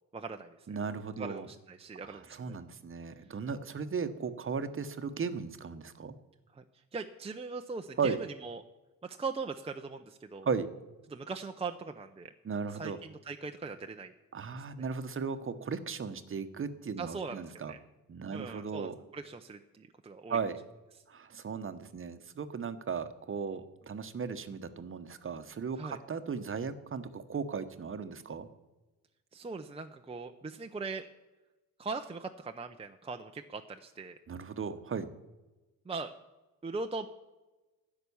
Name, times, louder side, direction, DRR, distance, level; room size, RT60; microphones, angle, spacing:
voice 1, 0.1-0.6 1.2-2.6 6.5-6.6 6.9-8.6 9.0-10.5 11.1-12.3 12.7-14.1 14.8-14.9 17.0-17.8 18.3-20.4 25.8-26.0 29.3-31.1 31.8-34.2 35.9-36.1 36.6-37.1, right 4 dB, 15° right, 5 dB, 0.6 m, -40 dB
voice 2, 0.7-1.5 2.1-6.1 8.0-8.2 10.4-10.7 12.4-13.0 14.3-17.7 18.1-19.0 20.3-20.6 21.1-28.5 34.3-35.1, right 5 dB, 35° right, 10 dB, 1.0 m, -36 dB
11.0 x 7.8 x 7.1 m, 1.1 s
cardioid pair, 80°, 35 cm